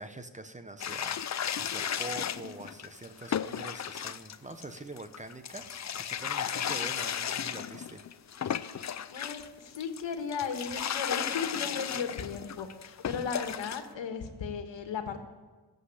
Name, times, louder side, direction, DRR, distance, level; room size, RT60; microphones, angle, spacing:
voice 1, 0.0-8.0, right 2 dB, 15° right, 9 dB, 0.9 m, -44 dB
sound 1, 0.8-9.5 9.7-13.9, left 9 dB, 40° left, 0.5 m, -35 dB
voice 2, 9.1-15.2, left 6 dB, 75° left, 6 dB, 1.7 m, -36 dB
14.5 x 7.9 x 8.6 m, 1.3 s
cardioid pair, 95°, 44 cm